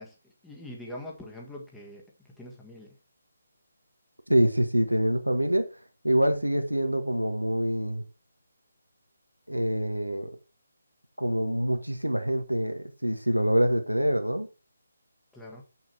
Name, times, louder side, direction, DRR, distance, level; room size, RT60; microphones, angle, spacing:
voice 1, 0.0-3.0 15.3-15.6, left 1 dB, 5° left, 1.6 m, -44 dB
voice 2, 4.3-5.7 6.0-8.0 9.5-10.3 11.2-14.5, equal, 85° right, 1.6 m, -25 dB
8.1 x 6.4 x 4.3 m
figure-of-eight pair, 145°, 0 cm